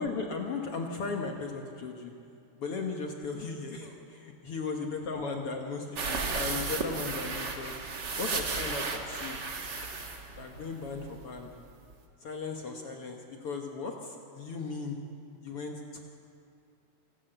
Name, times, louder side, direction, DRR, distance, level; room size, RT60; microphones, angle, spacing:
voice 1, 0.0-2.1 2.6-7.7 8.2-9.5 10.4-11.5 12.2-15.0 15.4-16.0, left 4 dB, 65° left, 1 dB, 1.4 m, -36 dB
sound 1, 6.0-11.2 11.5-11.6 11.9-12.0, right 4 dB, 50° right, 1.3 m, -34 dB
28.0 x 12.0 x 8.0 m, 2.6 s
omnidirectional pair, 4.4 m